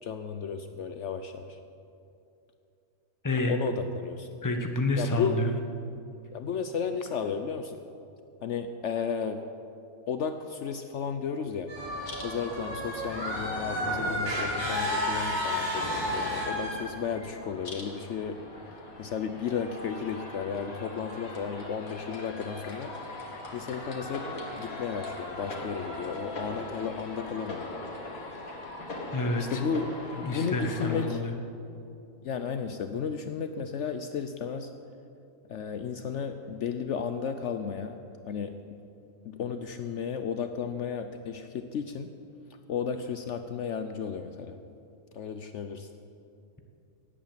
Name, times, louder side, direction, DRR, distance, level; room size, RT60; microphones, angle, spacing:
voice 1, 0.0-1.6 3.5-4.3 5.0-5.4 6.3-7.8 8.4-9.5 10.1-11.7 12.2-18.4 19.0-23.2 23.5-27.6 29.4-29.9 30.2-31.2 32.2-34.7 35.5-38.0 38.3-38.6 39.2-42.1 42.7-44.6 45.1-45.9, left 6 dB, 65° left, 8 dB, 0.9 m, -33 dB
voice 2, 3.2-3.6 4.4-5.6 29.1-29.6 30.2-31.3, left 2 dB, 15° left, 4 dB, 1.0 m, -28 dB
sound 1, 11.7-16.8, equal, 80° right, 4.5 m, -31 dB
sound 2, 11.8-31.1, left 2 dB, 85° left, 2.3 m, -40 dB
18.0 x 8.7 x 7.5 m, 2.6 s
omnidirectional pair, 1.4 m